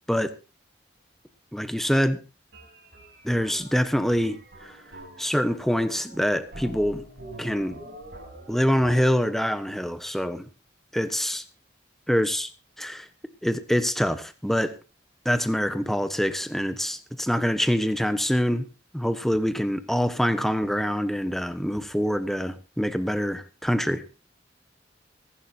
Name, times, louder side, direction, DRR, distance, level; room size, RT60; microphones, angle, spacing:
voice 1, 1.5-2.2 3.2-4.7 5.2-7.0 7.4-7.8 8.5-10.5 10.9-11.4 12.1-12.5 12.8-13.1 13.4-14.8 15.2-18.7 18.9-24.0, equal, ahead, 10 dB, 1.1 m, -25 dB
sound 1, 2.5-8.9, right 1 dB, 60° right, 7.1 m, -45 dB
24.5 x 11.5 x 2.8 m, 0.30 s
head